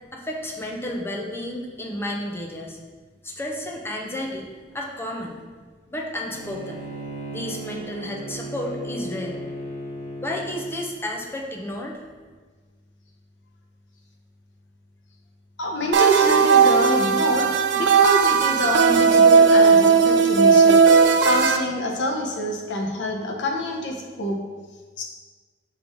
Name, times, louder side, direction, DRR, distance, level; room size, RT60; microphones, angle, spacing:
voice 1, 0.1-2.8 3.2-4.5 4.7-5.3 5.9-6.8 7.3-9.4 10.2-12.0, left 1 dB, 15° left, 0 dB, 0.7 m, -31 dB
Bowed string instrument, 6.3-10.8, right 1 dB, 40° left, 1.3 m, -35 dB
voice 2, 15.6-20.8 21.2-24.4 25.0-25.1, left 1 dB, 85° left, 1 dB, 0.9 m, -26 dB
sound 1, 15.9-21.6, right 5 dB, 80° right, 0.4 m, -16 dB
5.6 x 3.7 x 4.5 m, 1.4 s
head